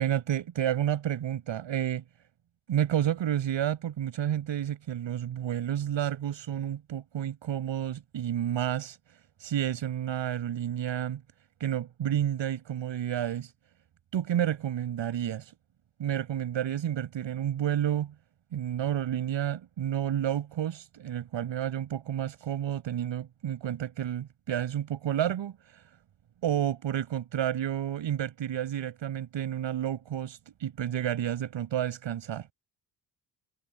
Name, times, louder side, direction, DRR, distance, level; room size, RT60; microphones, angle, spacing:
voice 1, 0.0-2.0 2.7-9.0 9.4-11.2 11.6-13.5 14.1-15.5 16.0-18.1 18.5-25.8 26.4-32.5, right 10 dB, 75° right, 7.8 m, -30 dB
cardioid pair, 75°, 46 cm